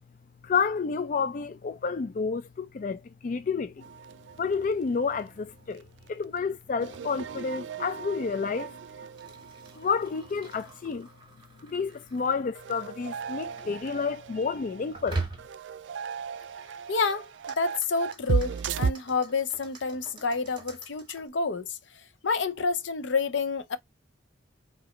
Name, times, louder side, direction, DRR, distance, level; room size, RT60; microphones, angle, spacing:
voice 1, 0.4-3.8 4.4-5.8 6.1-8.7 9.8-11.1 11.6-15.2, left 5 dB, 45° left, 0.3 m, -30 dB
sound 1, 3.8-5.3 5.6-5.8 6.1-6.2 6.8-10.8 11.1-11.2 12.5-18.9, right 5 dB, 75° right, 0.4 m, -35 dB
sound 2, 4.3-13.7 14.9-15.8 16.7-21.3, right 3 dB, 25° right, 1.5 m, -44 dB
voice 2, 16.9-17.3 17.6-21.8 22.2-23.8, left 4 dB, 75° left, 0.6 m, -28 dB
4.9 x 2.7 x 3.0 m
head